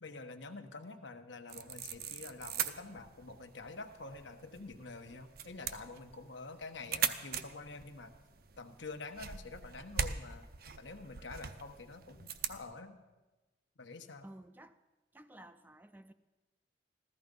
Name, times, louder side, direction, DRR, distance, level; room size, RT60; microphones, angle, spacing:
voice 1, 0.0-8.1 8.6-10.5 10.8-13.0 13.8-14.3, left 3 dB, 85° left, 6 dB, 1.1 m, -47 dB
sound 1, 1.5-12.6, right 8 dB, 55° right, 0.7 m, -41 dB
voice 2, 14.2-14.8 15.1-16.1, right 1 dB, 10° right, 11 dB, 0.4 m, -53 dB
14.5 x 13.5 x 5.3 m, 1.2 s
head